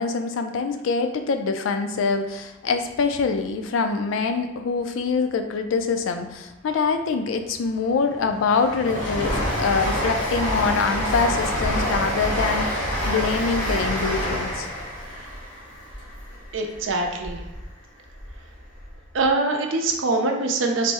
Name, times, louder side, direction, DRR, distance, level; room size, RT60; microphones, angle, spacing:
voice 1, 0.0-14.7, left 4 dB, 85° left, 7 dB, 0.4 m, -24 dB
Train, 7.5-17.6 18.0-19.0 19.2-19.3, equal, 70° left, 1.3 m, -27 dB
voice 2, 16.5-17.4 19.1-20.9, right 3 dB, 80° right, 3 dB, 0.5 m, -23 dB
4.1 x 2.0 x 3.4 m, 1.0 s
head